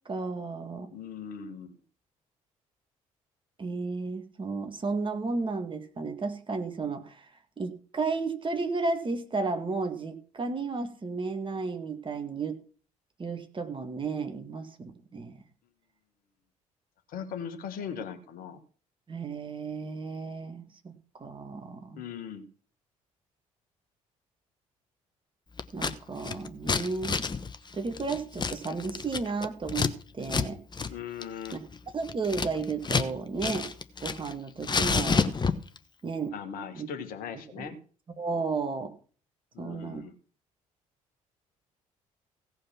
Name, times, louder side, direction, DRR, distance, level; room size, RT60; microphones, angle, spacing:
voice 1, 0.1-0.9 3.6-7.3 7.6-12.6 13.2-15.4 19.1-22.0 25.7-27.2 27.7-30.6 31.9-33.7 34.0-35.3 36.0-36.3 36.7-36.9 37.6-37.7 38.2-38.9 39.6-40.0, right 4 dB, 30° right, 6 dB, 2.0 m, -33 dB
voice 2, 0.9-1.8 17.1-18.6 21.9-22.5 30.9-31.6 36.3-37.8 39.5-40.1, left 7 dB, 55° left, 7 dB, 1.6 m, -39 dB
Scissors, 25.6-25.9 26.2-29.9 30.2-30.5 30.7-30.9 31.2-33.1 33.4-34.3 34.6-35.8, left 5 dB, 25° left, 1.1 m, -29 dB
16.5 x 5.6 x 6.0 m, 0.41 s
figure-of-eight pair, 50°, 17 cm